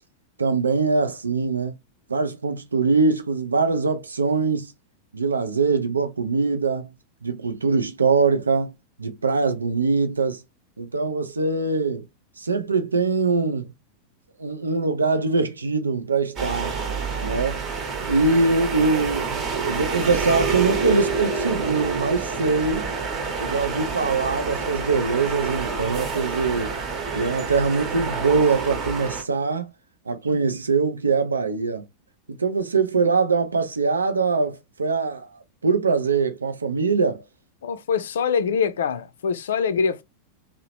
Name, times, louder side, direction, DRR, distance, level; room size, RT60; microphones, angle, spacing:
voice 1, 0.4-1.7 2.1-4.7 5.1-6.9 7.2-8.7 9.0-10.4 10.8-12.0 12.4-13.7 14.4-16.7 17.2-17.6 18.1-22.9 23.4-26.7 27.1-29.7 30.1-31.8 32.3-37.2, right 4 dB, 85° right, 0.5 m, -23 dB
sound 1, 16.4-29.2, right 5 dB, 35° right, 0.9 m, -28 dB
voice 2, 37.6-40.0, left 6 dB, 70° left, 0.4 m, -24 dB
2.8 x 2.0 x 2.8 m
figure-of-eight pair, 90°, 0 cm